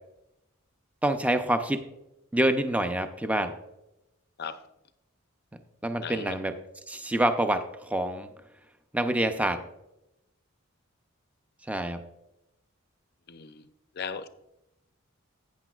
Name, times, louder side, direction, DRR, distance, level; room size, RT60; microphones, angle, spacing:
voice 1, 1.0-1.8 2.3-3.6 5.8-6.5 6.9-8.3 8.9-9.6 11.7-12.0, right 1 dB, 5° right, 0.5 m, -26 dB
voice 2, 6.0-6.4 13.3-13.7 13.9-14.3, left 6 dB, 50° left, 0.5 m, -37 dB
12.0 x 8.8 x 2.4 m
head